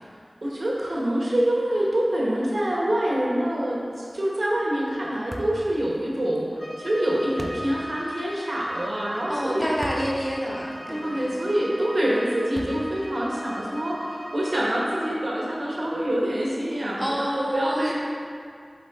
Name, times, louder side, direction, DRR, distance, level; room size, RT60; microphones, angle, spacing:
voice 1, 0.4-10.1 10.9-17.9, right 1 dB, 75° right, -5 dB, 1.2 m, -26 dB
sound 1, 5.3-5.6 7.4-7.7 9.8-10.1 10.7-10.8 12.5-13.0, equal, 20° right, 0.5 m, -37 dB
Bowed string instrument, 6.5-15.1, equal, 35° left, 0.9 m, -40 dB
voice 2, 9.3-11.3 17.0-17.9, equal, ahead, -3 dB, 1.0 m, -28 dB
7.7 x 3.8 x 3.6 m, 2.3 s
wide cardioid pair, 50°, 0 cm